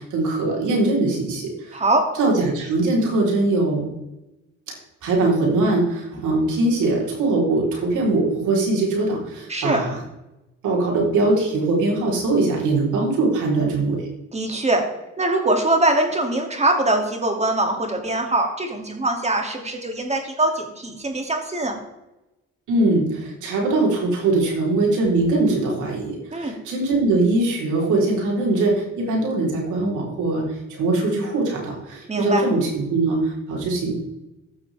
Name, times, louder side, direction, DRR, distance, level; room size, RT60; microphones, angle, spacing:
voice 1, 0.0-1.8 2.2-3.9 4.7-4.8 5.0-10.0 10.6-14.1 22.7-34.0, right 2 dB, 80° right, -2 dB, 4.1 m, -21 dB
voice 2, 1.7-2.1 9.5-9.8 14.3-14.9 15.2-21.8 26.3-26.5 32.1-32.5, right 2 dB, 20° right, 3 dB, 2.7 m, -22 dB
15.5 x 6.4 x 3.6 m, 0.96 s
cardioid pair, 90°, 30 cm